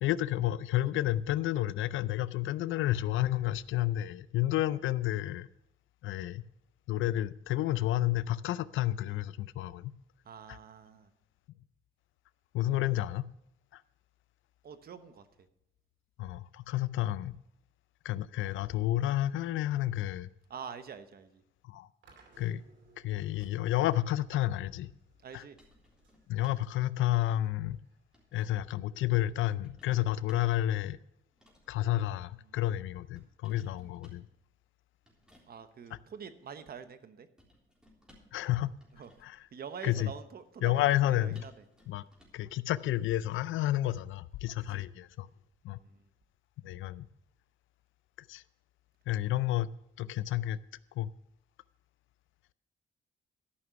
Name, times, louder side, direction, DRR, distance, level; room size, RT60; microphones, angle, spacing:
voice 1, 0.0-5.5 6.0-6.4 6.9-9.9 10.5-10.6 12.5-13.3 13.7-13.8 16.2-17.3 18.0-20.3 21.6-21.9 22.4-22.6 23.0-24.9 25.3-25.4 26.3-27.8 28.3-31.0 31.7-34.3 38.3-38.7 39.2-39.5 39.8-40.1 40.6-41.5 41.9-42.0 42.3-45.3 45.6-45.8 46.6-47.1 48.3-48.4 49.1-49.7 50.0-50.6 51.0-51.1, left 14 dB, 80° left, 0.5 m, -30 dB
voice 2, 10.2-11.1 14.6-15.3 20.5-21.4 25.2-25.6 32.5-32.6 35.5-37.3 38.9-39.1 39.5-41.5 44.6-44.8 45.7-46.0, right 7 dB, 50° right, 1.0 m, -46 dB
sound 1, 22.0-29.1, right 3 dB, 70° right, 2.6 m, -64 dB
sound 2, 23.2-23.8 25.6-26.8 27.8-28.6 29.6-30.6 31.3-31.8 33.2-34.3 35.0-35.5 37.4-38.4 38.8-39.4 41.3-42.5 42.8-43.0, equal, 5° right, 3.6 m, -63 dB
13.0 x 6.1 x 6.9 m
cardioid pair, 90°, 20 cm